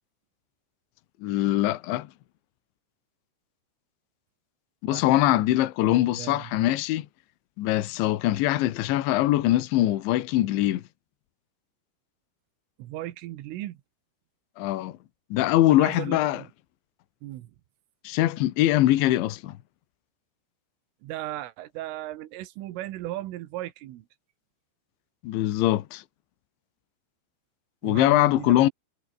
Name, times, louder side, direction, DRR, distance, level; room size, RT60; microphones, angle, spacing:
voice 1, 1.2-2.1 4.8-7.1 7.6-10.8 14.6-15.0 15.3-16.4 18.1-19.6 25.2-26.0 27.8-28.7, left 15 dB, 75° left, 3.6 m, -22 dB
voice 2, 4.9-5.4 5.8-6.7 12.8-13.8 15.7-16.5 17.2-17.6 21.0-24.1 27.8-28.7, right 15 dB, 85° right, 4.1 m, -37 dB
omnidirectional pair, 5.6 m